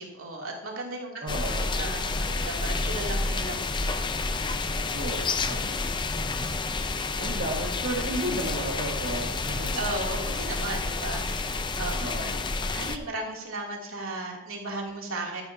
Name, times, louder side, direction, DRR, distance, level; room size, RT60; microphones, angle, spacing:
voice 1, 0.0-1.1 1.5-4.0 4.6-4.8 9.8-12.3 12.7-15.4, right 2 dB, 85° right, -1 dB, 2.9 m, -36 dB
voice 2, 1.2-1.8 4.9-6.0 6.4-9.7 12.0-12.5, right 1 dB, 55° right, -2 dB, 1.7 m, -34 dB
sound 1, 1.3-13.0, left 3 dB, 20° left, 0.5 m, -29 dB
14.0 x 10.5 x 2.8 m, 0.87 s
head